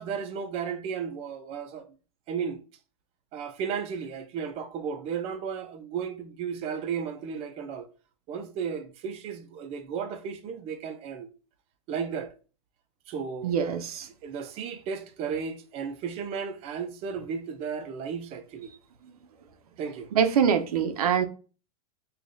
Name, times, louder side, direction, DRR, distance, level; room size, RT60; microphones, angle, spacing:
voice 1, 0.0-1.9 2.3-2.6 3.3-7.9 8.3-11.3 11.9-12.3 13.1-13.6 14.2-18.7 19.8-20.1, right 6 dB, 30° right, 0.6 m, -34 dB
voice 2, 13.4-14.1 19.0-19.1 20.1-21.2, right 7 dB, 85° right, 0.6 m, -24 dB
4.8 x 2.4 x 2.6 m
hypercardioid pair, 130°, 19 cm